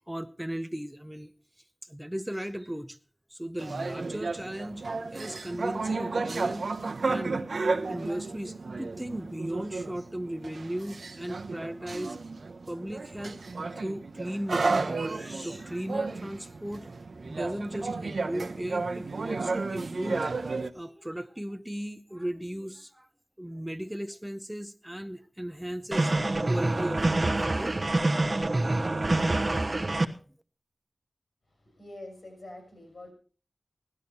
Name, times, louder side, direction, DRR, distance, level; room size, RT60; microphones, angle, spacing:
voice 1, 0.1-1.3 1.8-3.0 3.3-6.7 7.0-12.2 12.7-13.4 13.8-16.9 17.2-20.3 20.7-23.1 23.4-26.2 26.5-28.2 28.5-29.4 30.1-30.2, right 1 dB, 10° right, 11 dB, 0.7 m, -37 dB
sound 1, 3.6-20.7, right 3 dB, 80° right, 0.9 m, -33 dB
sound 2, 25.9-30.0, right 2 dB, 40° right, 1.1 m, -26 dB
voice 2, 31.6-33.1, left 1 dB, 75° left, 3 dB, 5.8 m, -45 dB
15.5 x 12.5 x 4.3 m, 0.38 s
wide cardioid pair, 75°, 0 cm